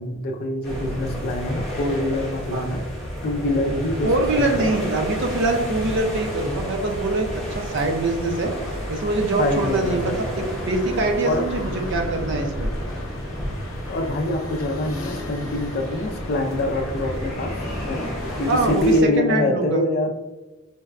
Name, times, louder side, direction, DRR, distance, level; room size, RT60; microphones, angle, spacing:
voice 1, 0.0-2.8 3.2-4.7 9.4-10.2 11.2-11.4 13.9-20.2, left 1 dB, 50° left, 3 dB, 0.4 m, -25 dB
sound 1, 0.6-19.0, equal, ahead, 0.8 m, -31 dB
voice 2, 4.0-8.5 8.9-12.7 18.5-19.8, right 2 dB, 60° right, 4 dB, 0.5 m, -24 dB
sound 2, 8.3-18.6, left 1 dB, 90° left, 0.7 m, -37 dB
4.0 x 2.2 x 2.4 m, 1.1 s
head